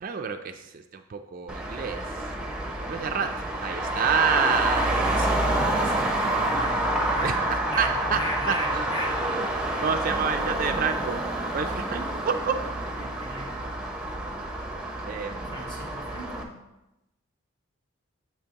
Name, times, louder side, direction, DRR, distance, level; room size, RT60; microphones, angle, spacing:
voice 1, 0.0-2.0 2.9-3.3 3.6-5.0 6.3-6.7 7.2-7.3 7.8-8.2 8.5-8.9 9.4-9.5 9.8-11.2 11.5-12.5 15.1-15.6, right 6 dB, 40° right, 7 dB, 0.3 m, -28 dB
Traffic noise roadway noise, 1.5-16.4, right 1 dB, 5° right, 0.7 m, -28 dB
voice 2, 2.8-3.3 4.7-6.9 7.1-7.4 7.7-9.2 12.9-13.7 15.5-16.6, equal, 20° left, 0 dB, 1.3 m, -38 dB
8.7 x 7.6 x 2.9 m, 0.93 s
head